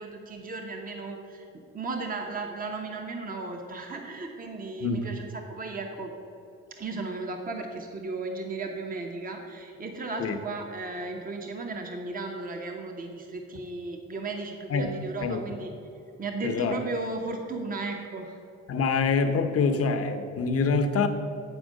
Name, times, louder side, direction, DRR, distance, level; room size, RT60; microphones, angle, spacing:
voice 1, 0.0-1.5 1.7-6.1 6.8-15.7 16.2-18.4, right 3 dB, 30° right, 3 dB, 0.9 m, -35 dB
voice 2, 16.4-16.8 18.7-21.1, left 4 dB, 50° left, 7 dB, 0.8 m, -25 dB
8.9 x 4.4 x 6.3 m, 2.7 s
cardioid pair, 90°, 30 cm